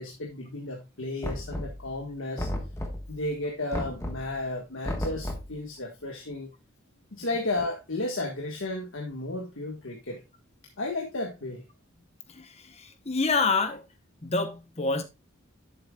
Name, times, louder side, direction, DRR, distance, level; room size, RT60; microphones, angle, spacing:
voice 1, 0.0-2.5 3.1-6.5 7.2-10.2 10.8-11.6, left 2 dB, 65° left, 1.6 m, -33 dB
Knock, 1.2-2.0 2.4-3.2 3.7-4.3 4.8-5.6, left 1 dB, 15° left, 1.3 m, -33 dB
voice 2, 12.8-13.8 14.2-15.0, left 3 dB, 30° left, 0.9 m, -27 dB
10.5 x 7.8 x 2.3 m
head